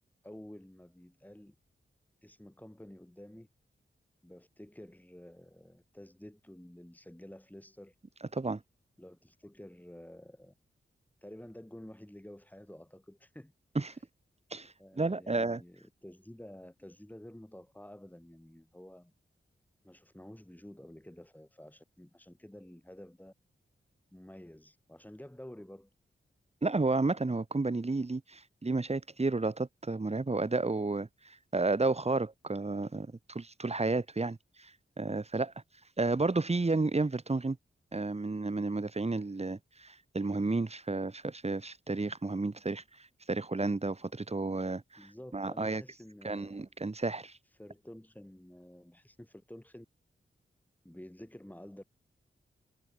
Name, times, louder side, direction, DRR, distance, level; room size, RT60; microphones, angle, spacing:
voice 1, 0.2-1.5 2.2-3.5 4.2-7.9 9.0-10.5 11.2-13.5 13.8-14.0 14.8-19.1 19.8-23.3 24.1-25.9 45.0-46.6 47.6-49.9 50.8-51.8, left 1 dB, 10° left, 6.1 m, -50 dB
voice 2, 14.5-15.6 26.6-34.7 35.0-35.5 36.0-37.6 37.9-42.8 43.3-45.8 46.2-47.3, right 3 dB, 30° right, 2.0 m, -32 dB
cardioid pair, 55°, 20 cm